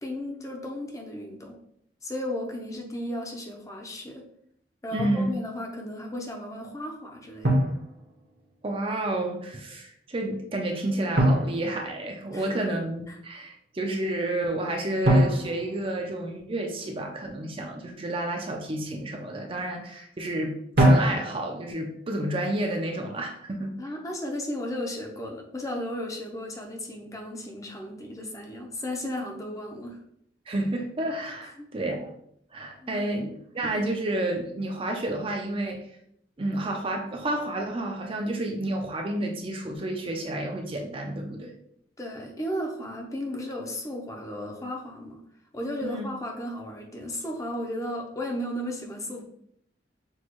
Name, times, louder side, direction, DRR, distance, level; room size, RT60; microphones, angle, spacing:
voice 1, 0.0-1.6 2.0-4.2 4.8-7.6 12.3-12.6 13.1-13.2 23.8-30.0 31.6-31.7 32.8-33.1 42.0-45.2 45.5-49.2, left 1 dB, 20° left, 1 dB, 0.6 m, -34 dB
voice 2, 4.9-5.3 8.6-23.7 30.5-32.1 32.5-35.8 36.4-41.5 45.8-46.1, right 1 dB, 30° right, 2 dB, 0.5 m, -30 dB
Drum, 5.0-5.3 7.4-8.6 11.2-12.6 15.0-16.8 20.8-21.7, right 1 dB, 60° right, 0.9 m, -24 dB
6.2 x 2.3 x 3.0 m, 0.71 s
head